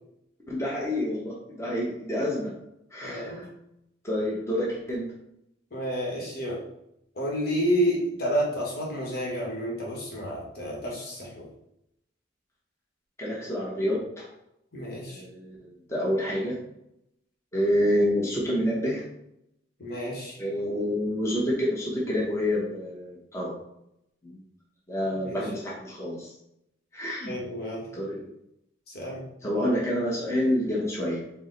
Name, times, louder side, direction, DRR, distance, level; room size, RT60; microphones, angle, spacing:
voice 1, 0.5-2.5 2.9-3.5 4.0-5.1 13.2-14.3 15.1-16.6 17.5-19.0 20.4-23.5 24.2-24.4 24.9-26.3 26.9-27.4 27.9-28.4 29.4-31.3, equal, 15° left, -5 dB, 0.8 m, -28 dB
voice 2, 3.0-3.5 5.7-6.6 7.1-11.5 14.7-15.2 19.8-20.4 25.3-25.4 27.3-27.9 28.9-29.2, equal, 55° left, -2 dB, 1.2 m, -30 dB
4.6 x 2.0 x 3.8 m, 0.80 s
head